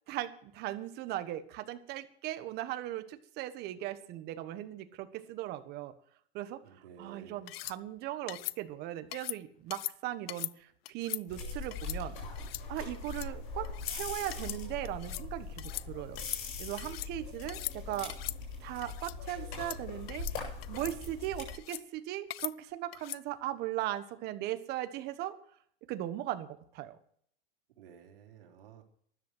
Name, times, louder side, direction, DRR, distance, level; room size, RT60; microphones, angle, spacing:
voice 1, 0.1-5.9 6.3-6.6 7.0-12.2 12.7-16.2 16.6-18.1 18.6-25.4 25.9-27.0, right 13 dB, 35° right, 11 dB, 1.4 m, -38 dB
voice 2, 6.6-7.4 27.8-28.8, right 7 dB, 70° right, 2 dB, 3.5 m, -53 dB
sound 1, 7.5-7.8 8.3-8.6 9.1-9.4 9.7-9.9 10.3-10.5 10.9-11.2 11.7-12.0 12.4-12.6 12.9-13.3 13.6-14.0 14.3-14.6 14.8-15.3 15.6-15.9 16.2-17.1 17.5-17.8 18.1-18.4 18.8-19.2 19.5-19.8 20.1-20.4 20.6-20.9 21.5-21.8 22.3-22.5 22.9-23.2, left 15 dB, 80° left, 0.6 m, -40 dB
sound 2, 11.3-21.6, left 4 dB, 55° left, 7.9 m, -41 dB
13.5 x 11.0 x 6.2 m, 0.62 s
supercardioid pair, 145°, 29 cm